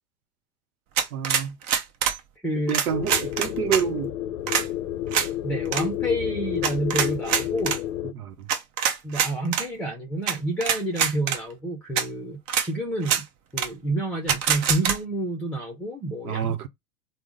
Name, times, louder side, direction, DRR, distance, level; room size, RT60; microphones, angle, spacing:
sound 1, 1.0-2.2 2.7-3.8 4.5-4.7 5.1-5.3 5.7-5.8 6.6-7.8 8.5-9.7 10.3-10.4 10.6-11.4 12.0-12.1 12.5-12.7 13.0-13.2 13.6-13.7 14.3-15.0, right 8 dB, 45° right, 0.7 m, -24 dB
voice 1, 1.1-1.5 2.7-4.1 8.1-8.5 16.2-16.7, right 8 dB, 85° right, 0.7 m, -28 dB
voice 2, 2.4-2.8 5.4-7.8 9.0-13.2 13.5-16.5, right 1 dB, 5° left, 0.6 m, -29 dB
sound 2, 2.9-8.1, left 12 dB, 60° left, 0.5 m, -30 dB
3.6 x 2.0 x 3.7 m
hypercardioid pair, 115°, 43 cm